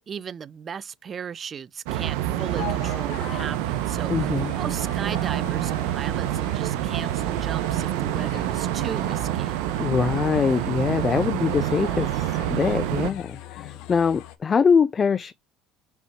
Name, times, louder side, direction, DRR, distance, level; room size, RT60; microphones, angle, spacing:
voice 1, 0.0-9.5, right 7 dB, 35° right, 0.6 m, -36 dB
sound 1, 1.9-13.1, right 13 dB, 85° right, 1.0 m, -27 dB
sound 2, 2.4-14.4, left 12 dB, 70° left, 1.1 m, -42 dB
voice 2, 4.1-4.5 9.8-15.3, left 6 dB, 30° left, 0.4 m, -23 dB
5.7 x 4.4 x 4.9 m
supercardioid pair, 110°, 0 cm